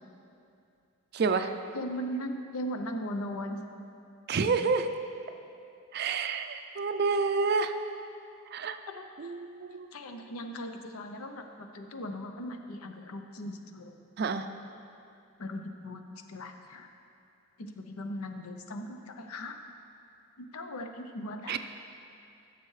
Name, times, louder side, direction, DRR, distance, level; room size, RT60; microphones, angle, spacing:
voice 1, 1.1-1.5 4.3-4.9 5.9-7.7 8.5-8.8 9.2-9.9 14.2-14.5 21.5-21.6, right 4 dB, 45° right, 8 dB, 0.4 m, -28 dB
voice 2, 1.7-3.6 8.9-9.3 9.9-14.0 15.4-16.0 16.3-16.9 17.6-19.6 20.4-21.6, equal, 85° left, 6 dB, 0.7 m, -38 dB
14.0 x 6.7 x 3.2 m, 2.6 s
head